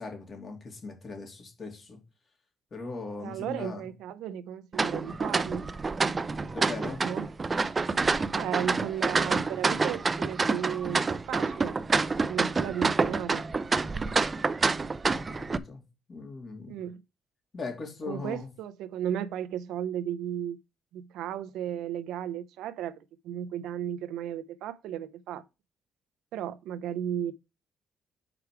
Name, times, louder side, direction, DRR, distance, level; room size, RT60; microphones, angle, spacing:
voice 1, 0.0-2.0 2.7-3.9 6.5-7.1 15.2-15.8 16.1-16.8 17.5-18.5, left 3 dB, 45° left, 2.6 m, -39 dB
voice 2, 3.2-5.7 7.0-7.3 8.3-11.8 12.2-13.4 16.7-17.0 18.1-20.6 20.9-25.4 26.3-27.3, right 10 dB, 90° right, 0.5 m, -35 dB
sound 1, 4.7-15.6, right 4 dB, 30° right, 0.4 m, -28 dB
5.9 x 4.8 x 4.8 m
cardioid pair, 90°, 0 cm